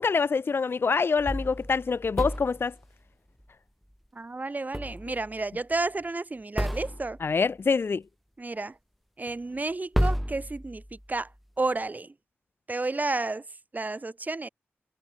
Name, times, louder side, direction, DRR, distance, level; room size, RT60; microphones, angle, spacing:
voice 1, 0.0-2.7 7.2-8.0, left 5 dB, 55° left, 0.6 m, -25 dB
sound 1, 1.2-2.8 4.7-5.4 5.7-5.8 6.6-7.3 9.3-9.4 9.9-11.1, equal, ahead, 2.9 m, -31 dB
voice 2, 4.1-7.2 8.4-8.8 9.2-11.3 11.6-12.1 12.7-13.4 13.7-14.5, right 3 dB, 40° right, 1.6 m, -31 dB
cardioid pair, 40°, 5 cm